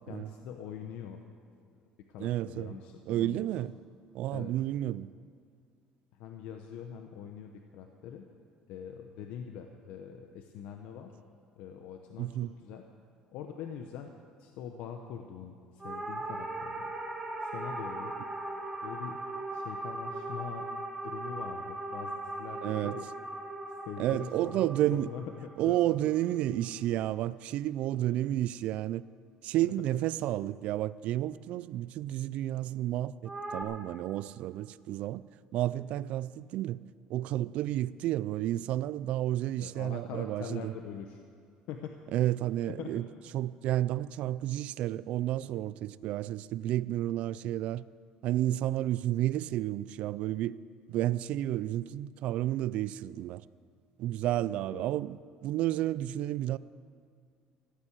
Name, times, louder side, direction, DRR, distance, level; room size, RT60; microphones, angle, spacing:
voice 1, 0.1-1.2 2.1-3.7 4.3-4.5 6.1-8.2 8.7-11.1 11.6-12.8 13.3-14.1 14.4-16.9 17.4-18.1 18.8-20.7 21.0-23.1 23.9-26.1 29.6-29.7 39.6-41.2 41.7-42.2 42.7-43.0 54.4-54.9, left 8 dB, 70° left, 1.0 m, -43 dB
voice 2, 2.2-2.8 3.1-3.7 4.1-5.1 12.2-12.5 22.6-23.0 24.0-25.1 25.6-29.0 29.4-35.2 35.5-36.8 37.1-40.7 42.1-43.1 43.3-47.8 48.2-50.6 50.9-53.4 54.0-56.6, right 14 dB, 60° right, 0.4 m, -31 dB
sound 1, 15.8-26.3 33.2-33.6, right 2 dB, 10° right, 1.7 m, -39 dB
15.0 x 8.9 x 8.2 m
cardioid pair, 145°, 2 cm